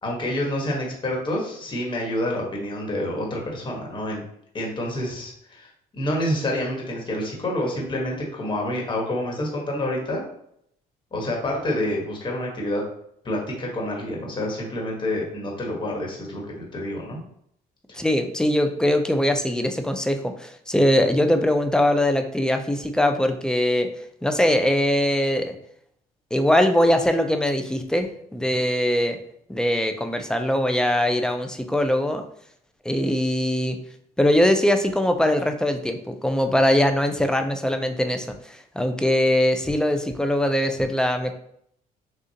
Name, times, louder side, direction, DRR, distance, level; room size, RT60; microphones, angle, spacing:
voice 1, 0.0-4.2 4.5-10.2 11.1-12.8 13.2-17.2, left 1 dB, 30° left, -1 dB, 1.3 m, -28 dB
voice 2, 17.9-23.9 24.2-25.6 26.3-29.2 29.5-32.2 32.8-33.8 34.2-41.3, left 1 dB, 5° left, 6 dB, 0.5 m, -22 dB
6.2 x 2.4 x 2.8 m, 0.70 s
cardioid pair, 110°, 17 cm